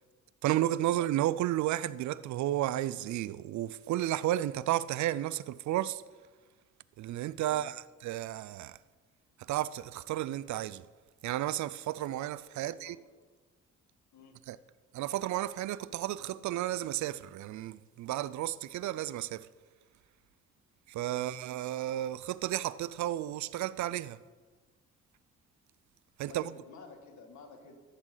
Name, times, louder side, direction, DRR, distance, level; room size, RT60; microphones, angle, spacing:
voice 1, 0.4-6.0 7.0-8.8 9.4-10.9 11.2-13.0 14.5-14.6 14.9-19.5 20.9-24.2 26.2-26.6, right 13 dB, 70° right, 0.5 m, -32 dB
voice 2, 12.6-13.0 14.1-14.4 21.1-21.4 26.3-27.8, left 4 dB, 70° left, 2.2 m, -53 dB
14.5 x 11.5 x 4.0 m
cardioid pair, 90°, 30 cm